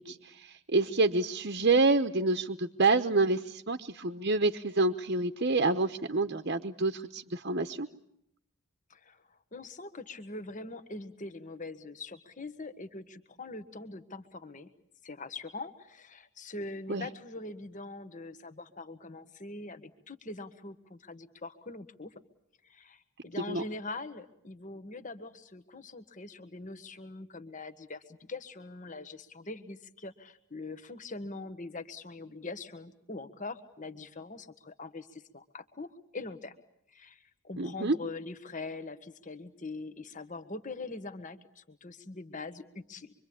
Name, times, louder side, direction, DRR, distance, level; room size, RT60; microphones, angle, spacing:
voice 1, 0.0-7.9 16.9-17.1 23.5-23.6 37.6-38.0, right 3 dB, 50° right, 7 dB, 1.0 m, -28 dB
voice 2, 8.9-14.7 15.0-22.1 22.6-36.5 36.9-43.1, left 3 dB, 35° left, 10 dB, 1.4 m, -43 dB
26.0 x 24.5 x 8.6 m, 0.76 s
head